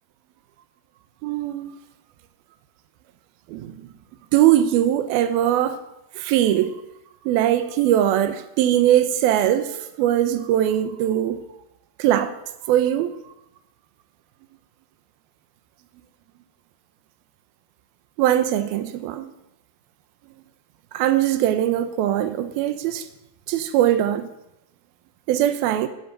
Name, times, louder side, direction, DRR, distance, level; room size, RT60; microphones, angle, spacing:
voice 1, 1.2-1.8 3.5-3.7 4.3-5.8 6.2-6.7 7.3-9.7 10.0-11.4 12.0-12.3 12.7-13.1 18.2-19.3 20.9-23.1 23.5-24.3 25.3-25.9, right 12 dB, 85° right, 2.2 m, -20 dB
12.5 x 12.0 x 9.1 m
omnidirectional pair, 5.6 m